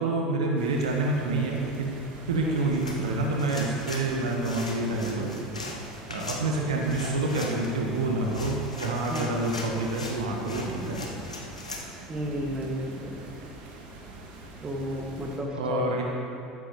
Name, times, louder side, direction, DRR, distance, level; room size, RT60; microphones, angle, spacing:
voice 1, 0.0-1.9 2.3-5.6 6.1-11.0 15.5-16.0, right 2 dB, 70° right, 0 dB, 1.2 m, -28 dB
sound 1, 0.6-15.4, right 2 dB, 45° right, 2.2 m, -44 dB
sound 2, 2.6-11.9, left 2 dB, 85° left, 1.2 m, -40 dB
voice 2, 12.1-13.3 14.6-16.0, equal, 25° right, 0 dB, 1.9 m, -32 dB
14.0 x 13.0 x 3.1 m, 2.6 s
figure-of-eight pair, 70°, 4 cm